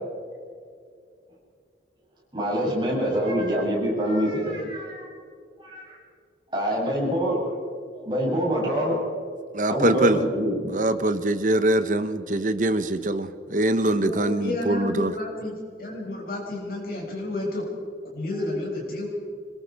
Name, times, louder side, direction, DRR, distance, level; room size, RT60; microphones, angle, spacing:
voice 1, 2.3-5.1 5.6-6.0 6.5-7.5 7.9-9.0 9.7-10.7, equal, 25° right, -5 dB, 7.8 m, -25 dB
voice 2, 9.5-10.2 10.7-15.1, right 1 dB, 45° right, 11 dB, 1.0 m, -23 dB
voice 3, 14.0-17.6 18.1-19.1, left 2 dB, 55° left, -2 dB, 6.8 m, -31 dB
25.5 x 21.5 x 4.8 m, 2.2 s
head